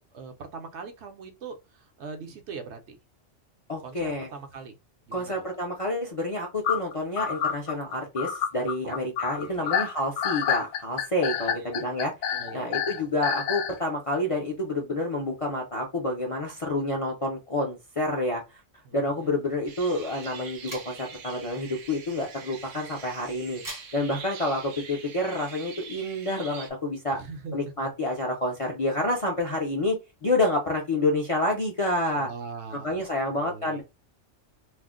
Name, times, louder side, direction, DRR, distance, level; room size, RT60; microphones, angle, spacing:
voice 1, 0.1-3.0 3.8-4.8 5.0-5.3 8.8-8.9 9.4-9.8 11.3-11.7 12.3-13.0 18.8-19.3 27.1-27.6 32.1-33.0 33.3-33.8, right 4 dB, 70° right, 0.9 m, -41 dB
voice 2, 3.7-4.3 5.1-18.4 18.9-23.6 23.9-27.2 27.5-30.0 30.2-32.3 32.8-33.8, left 1 dB, 45° left, 0.4 m, -28 dB
sound 1, 6.6-13.8, left 8 dB, 70° left, 0.8 m, -28 dB
sound 2, 19.2-24.6, right 1 dB, 25° right, 0.5 m, -48 dB
sound 3, 19.7-26.7, right 6 dB, 90° right, 1.0 m, -44 dB
2.4 x 2.1 x 3.5 m
omnidirectional pair, 1.3 m